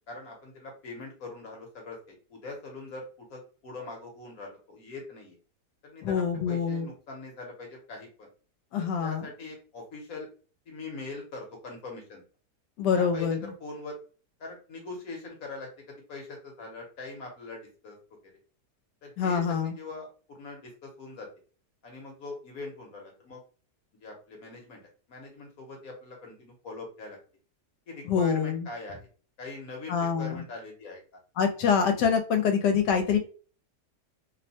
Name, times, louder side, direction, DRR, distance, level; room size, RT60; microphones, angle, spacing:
voice 1, 0.0-5.4 5.8-8.3 8.8-10.3 10.7-12.2 12.9-14.0 14.4-18.0 19.0-21.3 21.8-23.4 24.0-24.8 25.1-27.2 27.9-29.0 29.4-31.0, left 3 dB, 60° left, 1 dB, 1.2 m, -42 dB
voice 2, 6.0-6.9 8.7-9.3 12.8-13.5 19.2-19.7 28.1-28.7 29.9-30.4 31.4-33.2, left 6 dB, 85° left, 6 dB, 1.2 m, -25 dB
2.9 x 2.1 x 2.6 m, 0.38 s
omnidirectional pair, 1.8 m